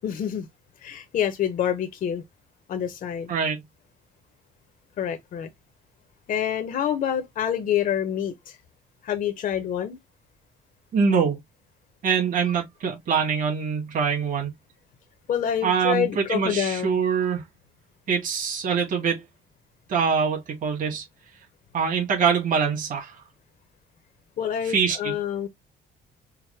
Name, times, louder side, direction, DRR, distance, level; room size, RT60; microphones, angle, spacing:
voice 1, 0.0-0.5 0.8-2.2 2.7-3.3 5.0-5.5 6.3-8.6 9.0-10.0 15.3-17.0 24.4-25.5, left 9 dB, 55° left, 0.7 m, -27 dB
voice 2, 3.3-3.6 10.9-11.4 12.0-14.5 15.6-17.4 18.1-19.2 19.9-21.0 21.7-23.2 24.7-25.1, right 6 dB, 50° right, 2.0 m, -24 dB
4.7 x 2.1 x 3.2 m
cardioid pair, 110°, 17 cm